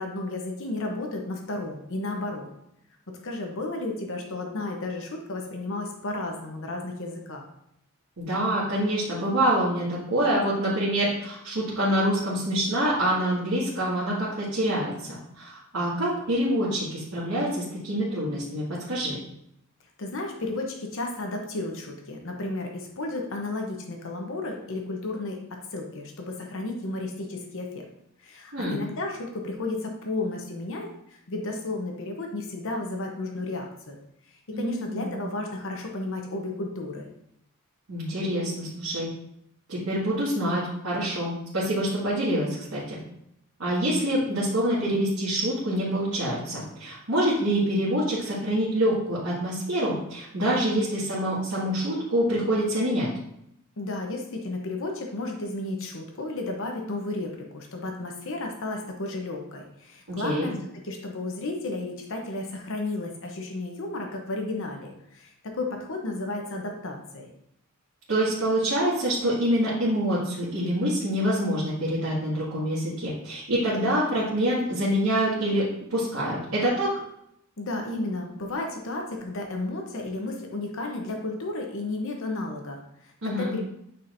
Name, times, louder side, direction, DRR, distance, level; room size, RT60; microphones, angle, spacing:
voice 1, 0.0-2.5 3.2-7.4 20.0-27.8 28.2-34.0 34.3-37.1 53.8-67.3 77.6-83.6, left 2 dB, 65° left, 2 dB, 0.9 m, -33 dB
voice 2, 8.2-19.2 28.5-28.8 34.5-35.2 37.9-39.1 39.7-43.0 43.6-53.1 60.1-60.5 68.1-75.6 75.9-76.9 83.2-83.5, right 1 dB, 90° right, -9 dB, 2.0 m, -26 dB
9.0 x 4.3 x 2.6 m, 0.76 s
head